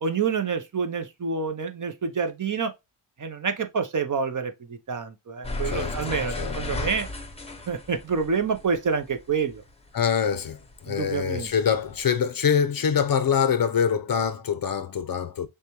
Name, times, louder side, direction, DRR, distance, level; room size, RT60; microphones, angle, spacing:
voice 1, 0.0-2.7 3.2-7.1 7.7-9.6 10.9-11.5, right 5 dB, 40° right, 0.7 m, -28 dB
sound 1, 5.4-10.1 10.4-12.0, left 2 dB, 15° left, 0.7 m, -34 dB
voice 2, 5.6-6.0 6.4-6.6 9.9-15.5, left 7 dB, 45° left, 0.6 m, -24 dB
6.5 x 2.2 x 3.0 m
wide cardioid pair, 125°, 49 cm